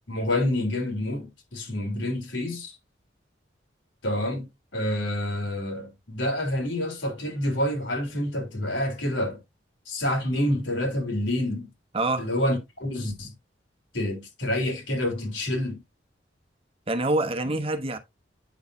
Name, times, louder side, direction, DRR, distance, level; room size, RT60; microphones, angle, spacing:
voice 1, 0.1-2.8 4.0-9.4 9.9-11.7 12.2-13.3 13.9-15.8, left 1 dB, 85° left, 3.6 m, -28 dB
voice 2, 11.9-12.3 16.9-18.0, right 2 dB, 30° right, 1.0 m, -26 dB
8.8 x 6.4 x 2.7 m
head